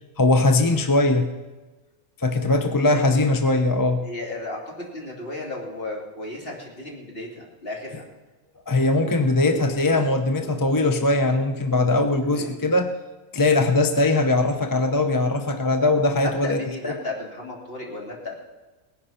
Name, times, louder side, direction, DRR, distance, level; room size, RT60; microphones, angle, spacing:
voice 1, 0.2-1.3 2.2-4.0 8.7-13.0 13.3-16.9, left 2 dB, 20° left, 7 dB, 0.6 m, -20 dB
voice 2, 4.0-8.0 12.2-12.6 16.2-18.4, left 2 dB, 40° left, -2 dB, 3.2 m, -34 dB
18.5 x 10.5 x 5.7 m, 1.2 s
omnidirectional pair, 1.5 m